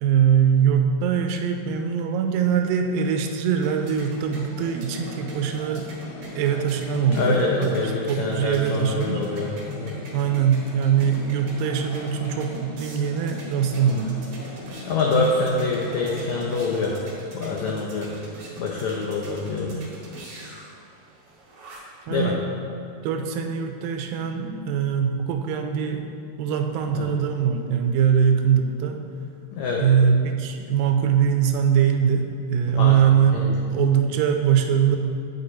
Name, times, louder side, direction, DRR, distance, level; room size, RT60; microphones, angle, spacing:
voice 1, 0.0-5.9 6.3-7.7 8.1-9.2 10.1-14.1 22.1-22.4 23.0-26.1 26.4-29.0 29.8-33.4 33.7-35.0, right 8 dB, 80° right, 5 dB, 2.2 m, -22 dB
sound 1, 2.9-22.1, right 2 dB, 55° right, 1.8 m, -44 dB
sound 2, 4.2-17.0, left 1 dB, 65° left, 2.3 m, -40 dB
voice 2, 7.1-9.9 14.9-17.0 17.3-18.1 18.6-19.9 22.1-22.3 26.9-27.1 29.5-29.8 32.8-32.9 33.3-33.6, left 3 dB, 85° left, -1 dB, 1.6 m, -25 dB
9.2 x 5.2 x 4.2 m, 2.8 s
omnidirectional pair, 4.2 m